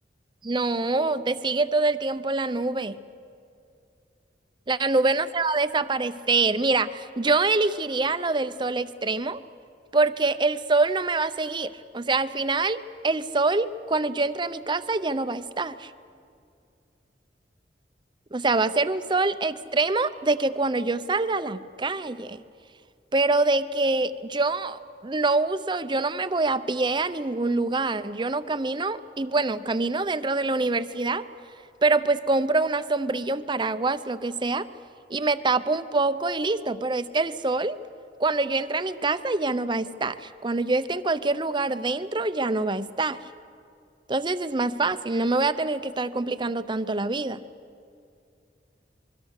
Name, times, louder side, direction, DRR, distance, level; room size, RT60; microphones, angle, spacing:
voice 1, 0.4-3.0 4.7-9.4 9.9-15.9 18.3-22.4 23.1-31.3 31.8-34.7 35.1-37.8 38.2-43.2 44.1-47.4, right 3 dB, 25° right, 12 dB, 0.7 m, -25 dB
26.0 x 22.0 x 6.6 m, 2.4 s
head